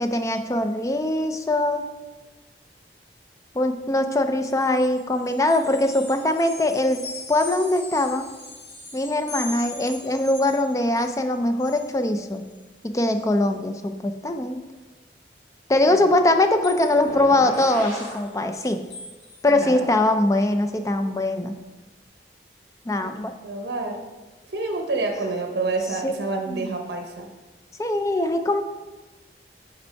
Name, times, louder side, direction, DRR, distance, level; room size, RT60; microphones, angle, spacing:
voice 1, 0.0-1.8 3.5-7.0 7.3-8.3 8.9-12.4 12.8-14.6 15.7-18.8 19.4-21.6 22.9-23.3 26.0-26.1 26.5-26.6 27.8-28.6, left 1 dB, 20° left, 7 dB, 0.4 m, -22 dB
sound 1, 4.5-11.2 11.6-12.0 12.3-12.6 13.2-13.3 16.6-17.1 17.5-19.4, left 2 dB, 70° left, 1.5 m, -41 dB
sound 2, 17.0-18.2, equal, 50° left, 2.2 m, -34 dB
voice 2, 19.5-19.9 23.0-24.0 24.5-27.3, right 3 dB, 75° right, 3 dB, 0.9 m, -29 dB
5.3 x 5.2 x 4.5 m, 1.2 s
head